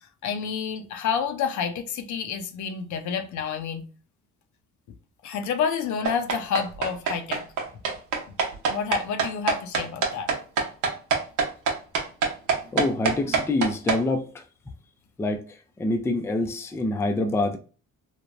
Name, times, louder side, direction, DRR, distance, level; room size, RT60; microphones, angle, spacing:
voice 1, 0.2-3.9 5.2-7.4 8.7-10.3, left 7 dB, 70° left, 0.6 m, -29 dB
sound 1, 6.0-14.0, right 5 dB, 80° right, 0.8 m, -24 dB
voice 2, 12.7-14.4 15.2-15.4 15.8-17.6, left 2 dB, 10° left, 0.3 m, -26 dB
3.1 x 2.1 x 2.4 m
cardioid pair, 90°, 30 cm